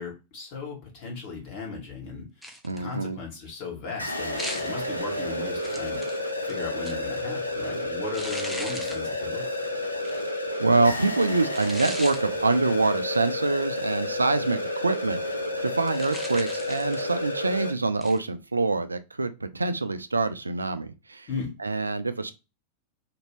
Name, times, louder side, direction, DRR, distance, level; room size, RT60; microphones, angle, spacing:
voice 1, 0.0-6.0 6.4-9.7 21.3-21.5, left 5 dB, 45° left, 1.5 m, -37 dB
sound 1, 2.4-2.9 4.4-4.8 5.6-7.2 8.1-9.1 10.0-10.3 11.5-12.2 15.9-17.1 18.0-18.2, equal, ahead, 0.6 m, -38 dB
voice 2, 2.6-3.2 10.6-15.2 15.6-21.3 21.6-22.3, right 3 dB, 80° right, 0.3 m, -25 dB
sound 2, 4.0-17.7, left 1 dB, 85° left, 0.5 m, -31 dB
2.9 x 2.6 x 3.0 m
figure-of-eight pair, 90°, 0 cm